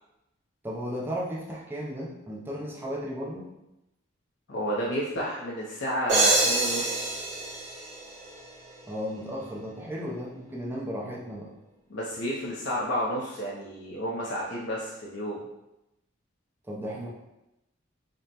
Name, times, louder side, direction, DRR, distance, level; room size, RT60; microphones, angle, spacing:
voice 1, 0.6-3.5 8.9-11.5 16.7-17.1, equal, 10° right, -4 dB, 0.5 m, -35 dB
voice 2, 4.5-7.1 11.9-15.5, equal, 65° left, -5 dB, 0.6 m, -31 dB
sound 1, 6.1-8.8, right 2 dB, 35° right, 1.1 m, -26 dB
5.1 x 2.1 x 2.9 m, 0.92 s
head